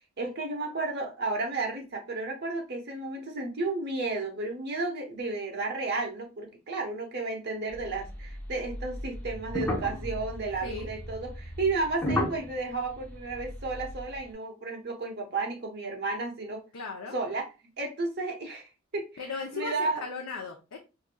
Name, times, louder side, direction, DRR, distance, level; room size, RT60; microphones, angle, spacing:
voice 1, 0.2-16.6 17.1-17.5 17.8-18.7 18.9-20.0, right 3 dB, 50° right, 2 dB, 1.0 m, -32 dB
sound 1, 7.7-14.3, left 1 dB, 10° left, 0.7 m, -35 dB
voice 2, 16.7-17.2 19.2-20.8, left 4 dB, 90° left, 0 dB, 0.6 m, -36 dB
4.7 x 2.6 x 2.2 m, 0.28 s
head